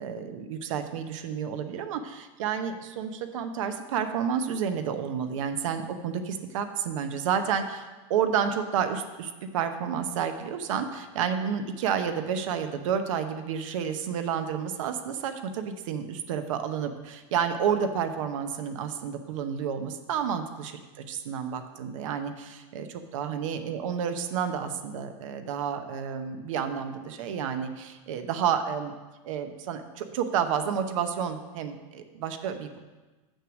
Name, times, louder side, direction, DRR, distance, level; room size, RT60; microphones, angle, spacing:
voice 1, 0.0-20.8 21.1-28.9 29.2-32.8, right 7 dB, 75° right, 8 dB, 0.8 m, -30 dB
6.4 x 6.3 x 6.1 m, 1.2 s
supercardioid pair, 145°, 17 cm